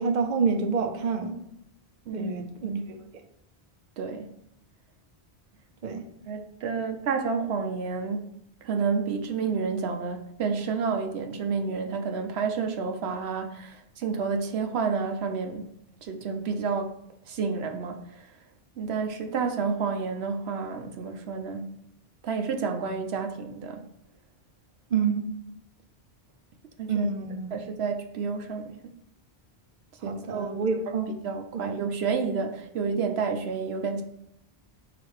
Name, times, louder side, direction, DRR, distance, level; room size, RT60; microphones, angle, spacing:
voice 1, 0.0-1.4 2.1-3.0 5.8-6.0 24.9-25.3 26.9-27.5 30.0-31.1 31.5-31.8, right 5 dB, 50° right, 5 dB, 0.7 m, -28 dB
voice 2, 4.0-4.3 6.3-8.3 8.6-15.7 16.0-16.9 17.3-18.3 18.8-21.8 22.2-23.9 26.8-27.1 27.5-28.7 30.0-30.5 30.9-31.0 31.2-34.0, right 5 dB, 80° right, 5 dB, 0.9 m, -30 dB
4.9 x 4.0 x 4.8 m, 0.75 s
omnidirectional pair, 1.1 m